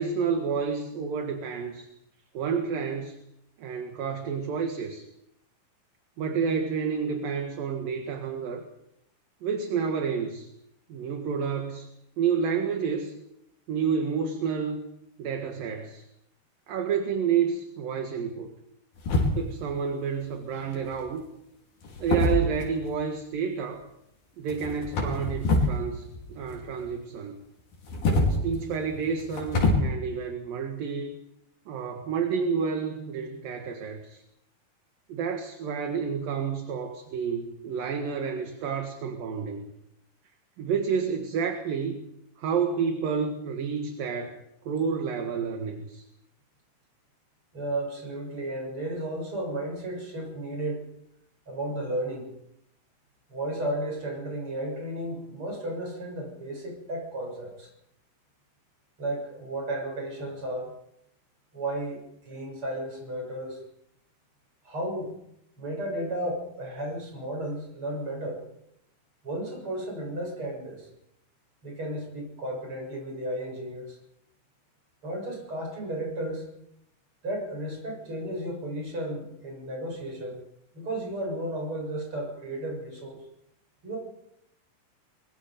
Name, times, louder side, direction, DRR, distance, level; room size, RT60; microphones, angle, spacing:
voice 1, 0.0-1.9 2.3-3.2 3.6-5.1 6.2-8.7 9.4-10.5 10.9-11.9 12.2-13.2 13.7-14.8 15.2-16.0 16.7-18.5 19.3-21.2 22.0-23.8 24.4-27.4 28.3-31.1 31.7-34.2 35.1-39.7 40.6-42.0 42.4-44.4 44.6-46.0, right 6 dB, 60° right, 4 dB, 3.2 m, -29 dB
sound 1, 19.0-19.7 20.7-21.1 21.8-23.0 24.5-25.8 26.1-26.9 27.7-29.7, left 2 dB, 60° left, 6.7 m, -26 dB
voice 2, 47.5-50.8 51.5-52.3 53.3-57.7 59.0-60.7 61.5-63.6 64.6-65.1 65.6-68.4 69.2-70.9 71.6-74.0 75.0-76.4 77.2-80.4 80.7-83.2 83.8-84.0, right 1 dB, 30° right, 1 dB, 8.2 m, -33 dB
24.5 x 22.5 x 5.3 m, 0.78 s
omnidirectional pair, 4.8 m